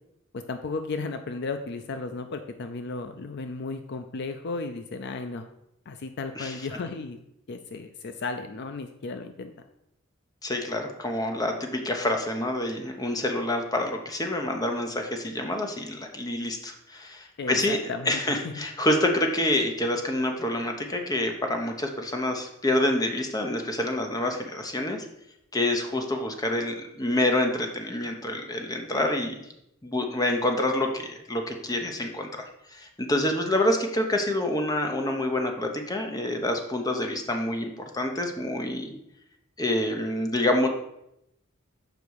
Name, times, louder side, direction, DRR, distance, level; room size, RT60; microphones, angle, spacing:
voice 1, 0.5-5.5 5.9-7.2 7.5-9.5 17.4-18.2 18.5-18.6, left 3 dB, 55° left, 8 dB, 0.5 m, -34 dB
voice 2, 10.4-17.8 18.0-25.1 25.5-29.4 29.8-38.9 39.6-40.7, left 1 dB, 20° left, 3 dB, 0.9 m, -27 dB
7.0 x 5.1 x 4.7 m, 0.81 s
head